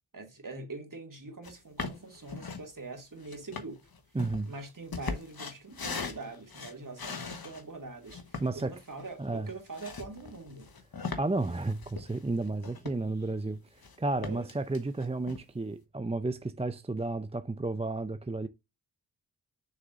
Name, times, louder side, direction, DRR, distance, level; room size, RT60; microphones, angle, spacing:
voice 1, 0.1-3.8 4.5-10.7 14.1-14.5, right 3 dB, 50° right, 2.5 m, -43 dB
sound 1, 1.4-1.5 1.8-2.7 3.2-7.6 8.1-13.3 13.6-14.0 14.2-15.4, left 4 dB, 60° left, 1.3 m, -40 dB
voice 2, 4.1-4.5 8.4-8.7 9.2-9.5 11.2-18.5, right 2 dB, 15° right, 0.5 m, -32 dB
7.4 x 6.4 x 2.6 m
wide cardioid pair, 70°, 42 cm